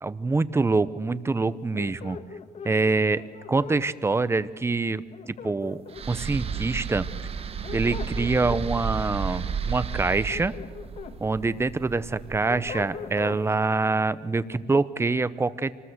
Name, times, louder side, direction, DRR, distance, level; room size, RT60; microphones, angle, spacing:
voice 1, 0.0-2.2 2.6-3.2 3.5-5.0 5.4-5.8 6.1-7.1 7.7-10.5 11.2-15.7, right 3 dB, 15° right, 16 dB, 0.8 m, -25 dB
sound 1, 1.7-3.8 5.1-6.2 7.4-8.6 10.1-11.2 11.6-13.4, left 6 dB, 50° left, 1.8 m, -39 dB
sound 2, 5.9-13.1, right 6 dB, 45° right, 1.4 m, -33 dB
25.5 x 20.0 x 8.1 m, 1.5 s
cardioid pair, 110°, 15 cm